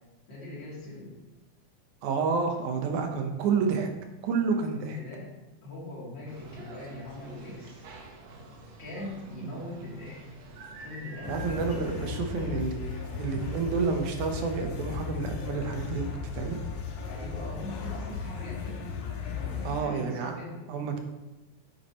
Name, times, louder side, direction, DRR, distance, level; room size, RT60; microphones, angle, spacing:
voice 1, 0.3-1.1 4.7-5.3 5.6-7.8 8.8-10.2 10.8-11.3 11.8-12.2 17.1-18.8 19.2-20.6, left 2 dB, 35° left, -7 dB, 3.5 m, -41 dB
voice 2, 2.0-3.9 4.2-5.0 9.4-9.5 11.3-12.8 13.2-16.6 19.6-20.3 20.7-21.0, right 5 dB, 80° right, 4 dB, 2.5 m, -29 dB
sound 1, 6.3-14.5, right 2 dB, 65° right, 2.3 m, -47 dB
sound 2, 11.2-19.8, left 5 dB, 80° left, 2.5 m, -36 dB
9.3 x 8.8 x 3.1 m, 1.1 s
omnidirectional pair, 3.5 m